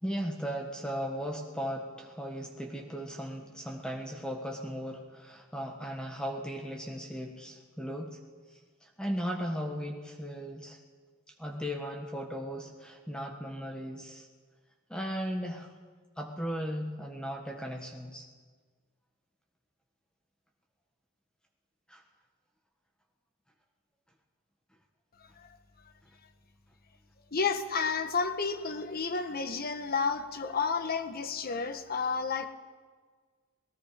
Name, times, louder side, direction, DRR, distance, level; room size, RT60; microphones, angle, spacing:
voice 1, 0.0-8.2 8.5-10.8 11.4-14.3 14.9-15.7 16.2-18.3 21.9-22.0, equal, 5° left, 2 dB, 1.6 m, -37 dB
voice 2, 27.3-32.5, left 5 dB, 45° left, 9 dB, 1.5 m, -31 dB
28.0 x 18.5 x 5.1 m, 1.5 s
head